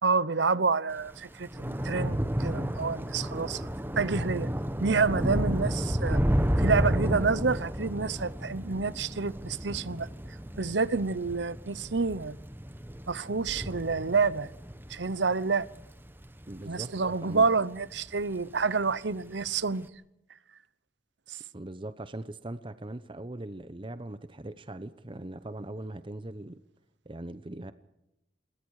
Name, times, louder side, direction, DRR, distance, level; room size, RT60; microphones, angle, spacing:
voice 1, 0.0-3.7 3.9-4.5 4.8-6.2 6.6-10.1 10.6-12.4 13.1-14.5 14.9-15.7 16.7-19.9 21.3-21.4, right 4 dB, 90° right, 0.9 m, -28 dB
Thunder / Rain, 1.0-17.6 17.9-18.4 18.6-18.8, equal, 10° right, 1.2 m, -32 dB
voice 2, 16.5-16.9 17.2-17.5 21.5-26.6 27.1-27.7, right 1 dB, 30° right, 0.8 m, -40 dB
27.5 x 21.5 x 4.9 m
head